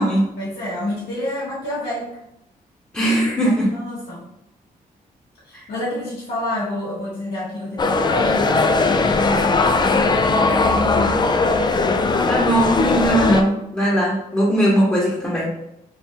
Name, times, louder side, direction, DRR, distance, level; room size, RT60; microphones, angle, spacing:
voice 1, 0.4-2.1 3.4-4.3 5.4-8.5 8.8-11.5 11.7-12.2, left 1 dB, 85° left, -9 dB, 1.3 m, -28 dB
voice 2, 2.9-3.7 5.5-5.6 12.3-15.5, right 1 dB, 10° left, -7 dB, 1.0 m, -19 dB
sound 1, 7.8-13.4, left 3 dB, 30° left, 0.4 m, -19 dB
3.9 x 2.6 x 2.8 m, 0.81 s
cardioid pair, 85°, 16 cm